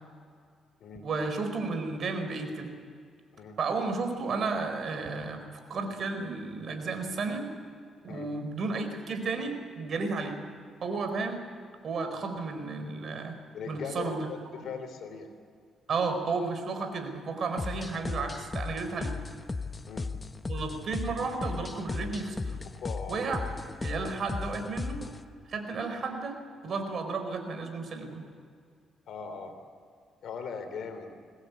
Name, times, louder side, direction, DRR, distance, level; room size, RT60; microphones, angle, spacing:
voice 1, 1.0-2.7 3.6-7.5 8.0-10.4 10.8-11.4 11.8-13.4 13.7-14.3 15.9-19.2 20.5-22.6 23.1-23.4 23.8-25.0 25.5-28.3, right 4 dB, 55° right, 7 dB, 4.4 m, -33 dB
voice 2, 13.5-15.3 19.9-20.1 22.8-23.3 29.1-29.5 30.2-31.1, left 5 dB, 70° left, 7 dB, 3.5 m, -39 dB
sound 1, 17.6-25.2, left 3 dB, 25° left, 1.1 m, -36 dB
23.0 x 19.5 x 8.3 m, 2.3 s
cardioid pair, 90°, 0 cm